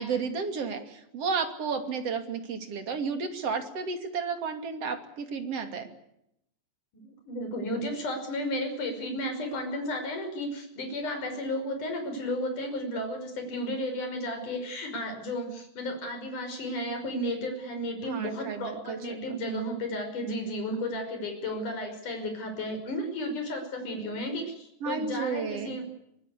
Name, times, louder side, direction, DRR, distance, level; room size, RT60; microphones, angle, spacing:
voice 1, 0.0-5.9 18.1-19.7 24.8-25.8, right 5 dB, 40° right, 7 dB, 3.0 m, -32 dB
voice 2, 6.9-25.9, left 1 dB, 45° left, 5 dB, 6.9 m, -33 dB
25.5 x 20.0 x 8.5 m, 0.79 s
omnidirectional pair, 5.3 m